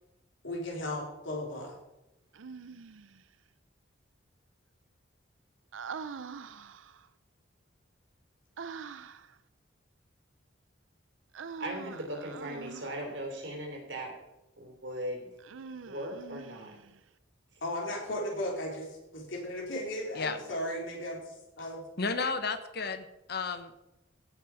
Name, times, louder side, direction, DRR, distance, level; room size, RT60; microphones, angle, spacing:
voice 1, 0.4-1.7 17.6-21.8, left 1 dB, 75° left, -1 dB, 3.4 m, -36 dB
Human voice, 2.3-3.2 5.7-7.1 8.6-9.3 11.3-13.1 15.4-17.0, right 5 dB, 80° right, 0.5 m, -44 dB
voice 2, 11.6-14.1 14.6-15.3 15.9-16.7, right 1 dB, 65° right, 1 dB, 3.3 m, -38 dB
voice 3, 22.0-23.8, left 4 dB, 55° left, 10 dB, 1.0 m, -33 dB
16.5 x 6.0 x 4.9 m, 0.94 s
head